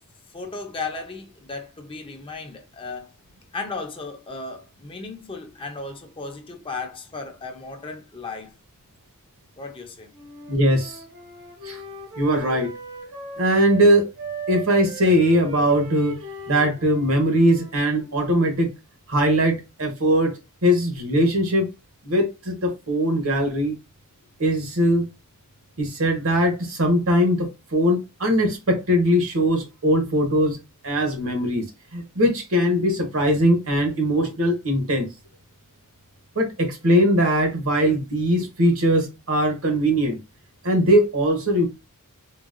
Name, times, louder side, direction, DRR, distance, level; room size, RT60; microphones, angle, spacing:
voice 1, 0.3-3.1 3.5-8.5 9.6-10.1, left 3 dB, 25° left, 0.5 m, -35 dB
Wind instrument woodwind instrument, 10.1-13.9 14.2-18.3, right 2 dB, 85° right, 1.7 m, -38 dB
voice 2, 10.5-11.0 11.6-11.8 12.2-12.7 13.4-14.1 14.5-16.2 16.5-18.7 19.1-20.3 20.6-21.7 22.0-23.8 24.4-25.1 25.8-30.6 30.8-31.6 31.9-35.1 36.3-40.2 40.6-41.7, equal, 70° right, 1.0 m, -20 dB
3.8 x 2.2 x 2.5 m
head